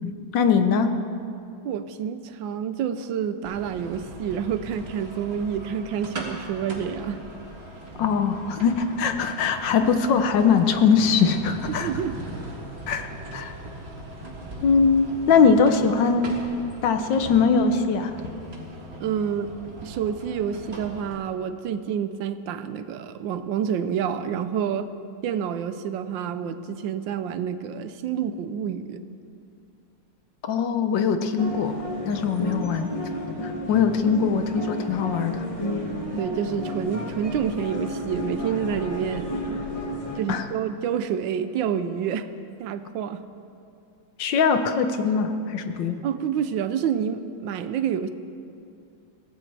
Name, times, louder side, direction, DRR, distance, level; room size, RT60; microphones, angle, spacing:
voice 1, 0.0-1.0 8.0-11.9 12.9-13.1 13.3-13.5 14.6-16.3 16.8-18.1 30.5-31.8 32.1-32.9 33.4-35.4 40.3-40.4 44.2-46.0, left 5 dB, 65° left, 8 dB, 1.4 m, -21 dB
voice 2, 1.6-7.2 11.7-12.2 19.0-19.5 19.8-24.9 25.2-29.0 36.2-39.4 40.2-42.3 42.6-43.2 46.0-48.1, right 8 dB, 70° right, 11 dB, 1.3 m, -28 dB
sound 1, 3.4-21.2, right 1 dB, 30° right, 1.9 m, -39 dB
sound 2, 31.4-40.2, left 1 dB, 15° left, 1.6 m, -31 dB
22.5 x 16.0 x 3.4 m, 2.5 s
omnidirectional pair, 2.2 m